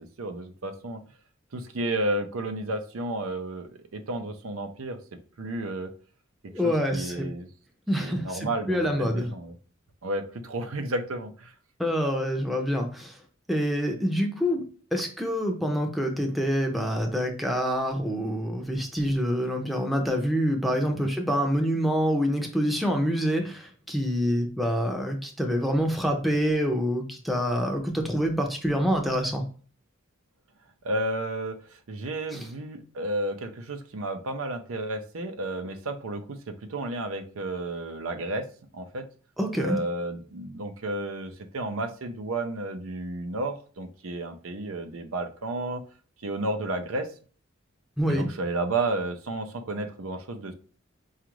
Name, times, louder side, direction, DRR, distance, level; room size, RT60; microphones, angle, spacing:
voice 1, 0.2-1.0 1.5-5.0 5.4-5.9 6.6-7.5 8.0-9.5 10.0-11.5 21.0-21.1 30.8-38.5 38.7-39.1 39.6-45.8 46.2-47.1 48.1-50.5, right 2 dB, 85° right, 7 dB, 0.6 m, -32 dB
voice 2, 6.5-7.3 7.9-9.3 11.8-13.2 13.5-14.6 14.9-29.4 32.3-32.5 39.4-39.8 48.0-48.3, equal, ahead, 3 dB, 0.6 m, -26 dB
4.9 x 2.4 x 3.0 m, 0.41 s
head